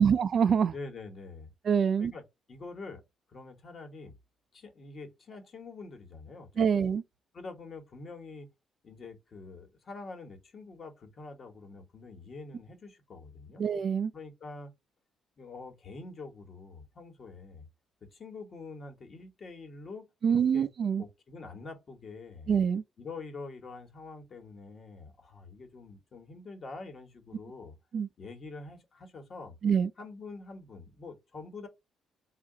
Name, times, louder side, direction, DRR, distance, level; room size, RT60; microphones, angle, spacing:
voice 1, 0.0-0.7 1.7-2.1 6.6-7.0 13.6-14.1 20.2-21.0 22.5-22.8 27.9-28.1 29.6-29.9, right 7 dB, 55° right, 0.3 m, -25 dB
voice 2, 0.7-1.5 2.0-2.2 2.5-3.0 3.3-4.1 4.5-6.6 7.3-8.5 8.8-13.6 14.1-14.7 15.4-17.7 18.0-20.7 21.0-22.5 23.0-27.8 28.2-29.6 30.0-31.7, left 3 dB, 50° left, 1.2 m, -45 dB
3.6 x 2.5 x 3.7 m
cardioid pair, 90°, 0 cm